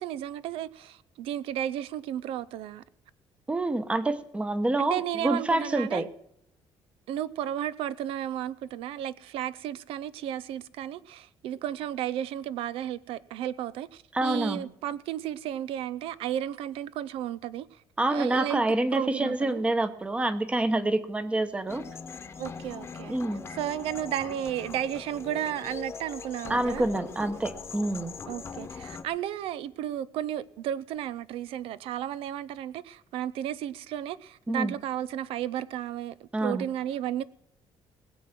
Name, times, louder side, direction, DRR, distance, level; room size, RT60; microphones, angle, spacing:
voice 1, 0.0-2.8 4.8-6.1 7.1-17.8 18.1-18.6 18.9-19.6 22.4-23.2 23.5-26.9 28.3-37.2, right 11 dB, 85° right, 0.6 m, -33 dB
voice 2, 3.5-6.0 14.1-14.7 18.0-21.8 23.1-23.4 26.5-28.1 34.5-34.7 36.3-36.7, right 2 dB, 10° right, 0.9 m, -27 dB
sound 1, 21.7-29.0, left 5 dB, 25° left, 1.1 m, -41 dB
20.0 x 7.7 x 5.9 m
cardioid pair, 165°, 9 cm